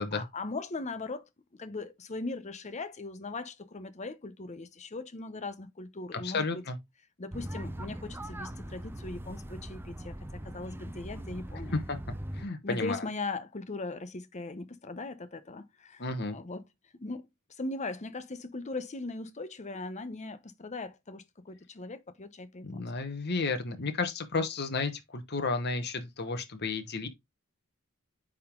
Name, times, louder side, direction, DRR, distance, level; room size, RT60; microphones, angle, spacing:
voice 1, 0.1-6.6 7.2-11.8 12.6-16.1 16.3-16.6 17.0-22.9, left 3 dB, 30° left, 0.7 m, -39 dB
voice 2, 6.1-6.8 11.7-12.0 12.3-13.0 16.0-16.4 22.6-27.1, left 3 dB, 50° left, 1.1 m, -32 dB
sound 1, 7.3-12.4, right 1 dB, 10° right, 0.5 m, -40 dB
9.2 x 3.8 x 3.7 m
head